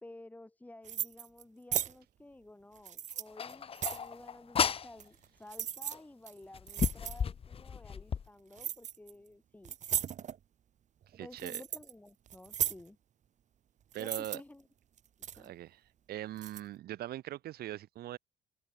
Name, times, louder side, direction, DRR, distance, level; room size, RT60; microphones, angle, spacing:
voice 1, 0.0-9.8 11.2-13.0 14.0-14.6 15.4-15.5, left 1 dB, 10° left, 2.2 m, -53 dB
sound 1, 0.8-1.4 1.7-1.9 2.8-4.1 5.0-5.2 5.5-5.9 6.3-6.4 6.7-7.2 8.5-9.1 9.6-10.4 11.0-11.9 12.3-12.8 13.9-14.4 15.0-15.5 16.4-16.6, right 9 dB, 45° right, 1.1 m, -36 dB
sound 2, 3.4-4.9 5.9-6.0 6.5-8.3, left 7 dB, 35° left, 1.0 m, -33 dB
voice 2, 11.1-11.6 13.9-14.4 15.3-18.2, right 13 dB, 65° right, 1.7 m, -41 dB
open air
cardioid pair, 110°, 17 cm